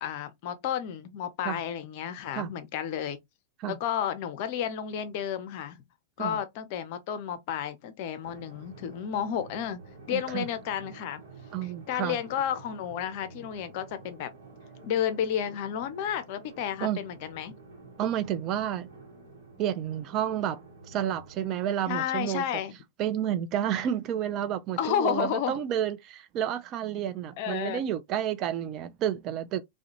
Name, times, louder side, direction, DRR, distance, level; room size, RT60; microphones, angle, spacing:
voice 1, 0.0-3.2 3.7-5.8 6.2-9.8 10.1-11.2 11.9-14.3 14.8-17.6 21.9-22.7 24.8-25.6 27.4-27.8, left 9 dB, 45° left, 0.5 m, -31 dB
sound 1, 8.2-21.5, right 3 dB, 70° right, 0.9 m, -50 dB
voice 2, 10.1-10.5 11.5-12.2 16.8-17.0 18.0-18.9 19.6-20.6 20.8-22.4 23.0-29.6, right 10 dB, 35° right, 0.3 m, -30 dB
2.3 x 2.1 x 2.8 m
figure-of-eight pair, 90°, 0 cm